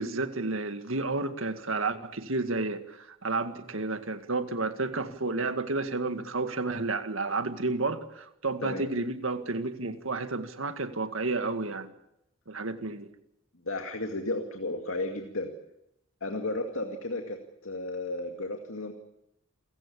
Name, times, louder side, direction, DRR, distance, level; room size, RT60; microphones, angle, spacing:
voice 1, 0.0-11.9 12.5-13.1, right 3 dB, 70° right, 2.0 m, -31 dB
voice 2, 13.6-15.5 16.2-17.4 17.6-18.9, left 2 dB, 75° left, 2.3 m, -33 dB
29.0 x 15.5 x 8.7 m
head